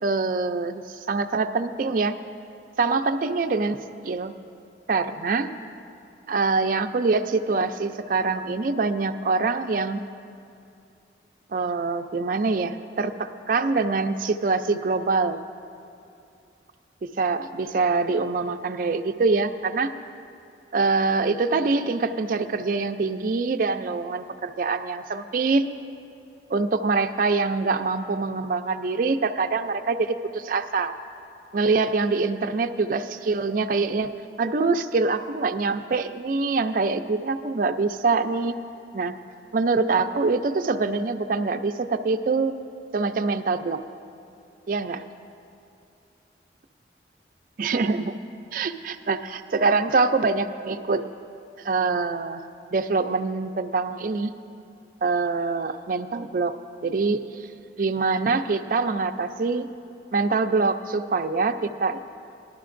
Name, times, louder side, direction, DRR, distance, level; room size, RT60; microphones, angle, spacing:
voice 1, 0.0-2.1 2.8-3.8 4.0-4.3 4.9-5.5 6.3-10.0 11.5-15.4 17.2-19.9 20.7-25.6 26.5-30.9 31.5-34.1 34.4-38.6 38.9-39.1 39.5-42.5 42.9-43.8 44.7-45.0 47.6-48.1 48.5-51.1 51.6-54.3 55.0-56.5 56.8-57.5 57.8-59.7 60.1-62.0, right 4 dB, 50° right, 8 dB, 0.4 m, -24 dB
18.5 x 11.5 x 2.5 m, 2.6 s
head